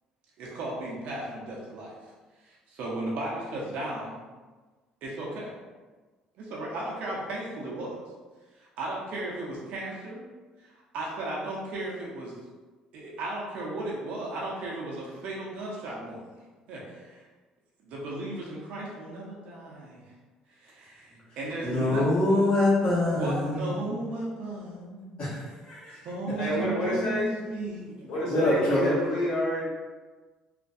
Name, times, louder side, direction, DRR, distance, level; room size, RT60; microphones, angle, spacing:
voice 1, 0.4-2.1 2.4-4.2 5.0-5.5 6.4-8.0 8.6-10.2 10.6-12.4 12.9-16.3 16.7-17.3 17.8-20.1 20.5-22.1 23.1-25.4 26.0-28.4, right 2 dB, 70° right, -4 dB, 0.6 m, -35 dB
voice 2, 21.6-23.7 25.2-26.0 28.2-29.0, left 1 dB, 50° left, -9 dB, 0.9 m, -24 dB
voice 3, 26.4-27.3 28.1-29.6, left 1 dB, 85° left, -8 dB, 1.2 m, -29 dB
2.4 x 2.2 x 2.5 m, 1.3 s
supercardioid pair, 85°, 2 cm